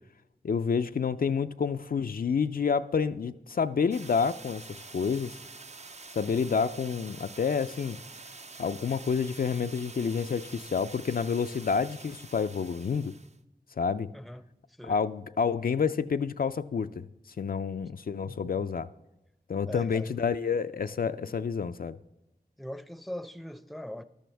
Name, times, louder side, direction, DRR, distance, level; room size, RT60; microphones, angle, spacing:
voice 1, 0.4-5.4 6.2-8.0 8.6-13.2 13.8-14.1 14.8-17.0 17.4-18.9 19.5-22.0, left 6 dB, 60° left, 0.4 m, -29 dB
sound 1, 3.9-13.4, right 3 dB, 40° right, 0.5 m, -47 dB
voice 2, 14.1-15.0 18.3-18.6 19.7-20.4 22.6-24.0, left 1 dB, ahead, 0.6 m, -42 dB
14.0 x 12.0 x 3.4 m
wide cardioid pair, 50°, 17 cm